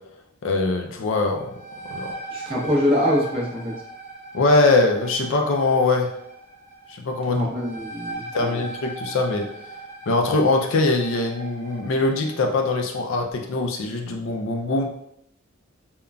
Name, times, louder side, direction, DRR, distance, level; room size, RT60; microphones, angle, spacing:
voice 1, 0.4-1.5 1.9-2.1 4.3-6.1 6.9-7.5 8.3-9.5 10.1-15.0, left 3 dB, 65° left, 2 dB, 0.4 m, -22 dB
sound 1, 1.4-12.8, right 2 dB, 10° left, 0.5 m, -39 dB
voice 2, 2.3-3.8 7.3-8.6, left 1 dB, 25° right, -5 dB, 0.7 m, -24 dB
3.7 x 2.1 x 2.2 m, 0.75 s
head